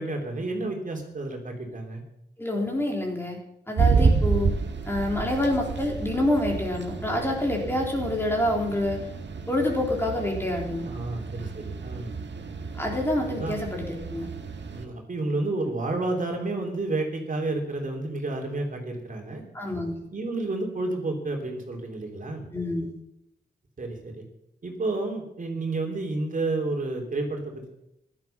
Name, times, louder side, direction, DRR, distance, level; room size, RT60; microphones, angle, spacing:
voice 1, 0.0-2.0 3.9-4.2 10.8-12.1 13.3-13.6 14.7-19.4 20.1-22.5 23.8-24.2 24.6-27.7, right 2 dB, 45° right, 1 dB, 3.4 m, -30 dB
voice 2, 2.4-3.4 3.7-4.5 4.9-9.1 9.5-10.9 12.8-14.3 19.5-20.0 22.5-22.9, left 1 dB, 15° left, 0 dB, 3.7 m, -27 dB
sound 1, 3.8-14.9, right 4 dB, 80° right, 1.7 m, -29 dB
16.0 x 12.0 x 5.9 m, 0.82 s
wide cardioid pair, 110°, 18 cm